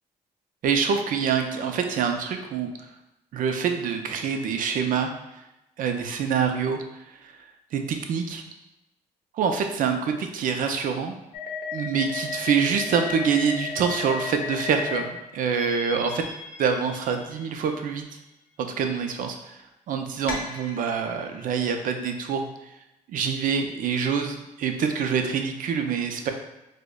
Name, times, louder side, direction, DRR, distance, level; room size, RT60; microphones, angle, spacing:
voice 1, 0.6-2.7 3.3-5.1 5.8-6.8 7.2-7.3 7.7-8.4 9.3-11.2 11.7-16.2 16.6-18.0 18.6-19.6 19.9-22.5 23.1-26.3, right 6 dB, 70° right, 5 dB, 0.4 m, -26 dB
sound 1, 11.3-15.0 15.5-17.7 20.3-21.3, left 5 dB, 80° left, 0.6 m, -35 dB
4.8 x 2.1 x 2.3 m, 0.92 s
cardioid pair, 90°, 15 cm